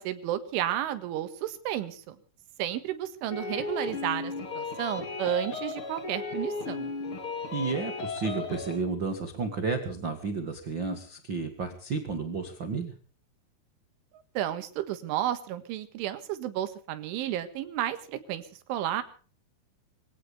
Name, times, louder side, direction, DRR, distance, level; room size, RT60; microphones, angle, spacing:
voice 1, 0.0-2.2 2.6-6.9 14.4-18.4 18.7-19.0, right 12 dB, 85° right, 11 dB, 4.1 m, -32 dB
sound 1, 3.3-8.8, left 4 dB, 30° left, 3.1 m, -35 dB
voice 2, 7.5-12.9, right 4 dB, 55° right, 7 dB, 1.3 m, -32 dB
24.5 x 17.0 x 3.3 m, 0.40 s
omnidirectional pair, 5.5 m